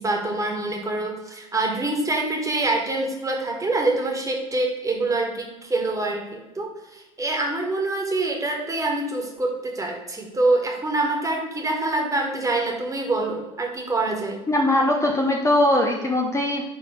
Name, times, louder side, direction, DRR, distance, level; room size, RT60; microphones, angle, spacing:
voice 1, 0.0-14.4, right 2 dB, 20° right, 0 dB, 1.9 m, -25 dB
voice 2, 14.5-16.6, left 1 dB, 15° left, 0 dB, 1.0 m, -20 dB
11.0 x 3.9 x 3.4 m, 1.1 s
figure-of-eight pair, 60°, 18 cm